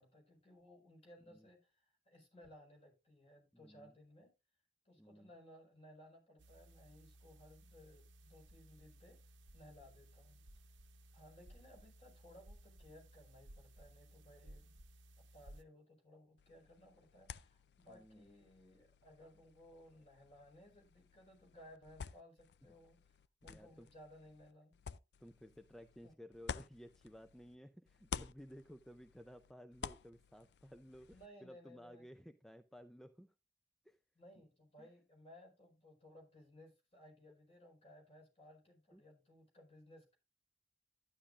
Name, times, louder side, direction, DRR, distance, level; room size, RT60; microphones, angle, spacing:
voice 1, 0.0-4.3 4.8-9.2 9.5-10.4 11.1-14.8 15.2-24.7 26.0-26.1 31.1-32.0 34.1-40.1, left 1 dB, 35° left, 1 dB, 4.7 m, -60 dB
voice 2, 3.5-3.9 5.0-5.3 17.9-18.3 23.4-23.9 25.2-33.3 33.8-34.0 34.8-34.9 38.9-39.0, equal, ahead, 8 dB, 0.4 m, -56 dB
sound 1, 6.4-15.6, right 1 dB, 85° right, 0.9 m, -60 dB
sound 2, 16.4-27.6 27.9-31.3, left 6 dB, 65° left, 0.4 m, -52 dB
12.0 x 9.9 x 2.5 m, 0.27 s
head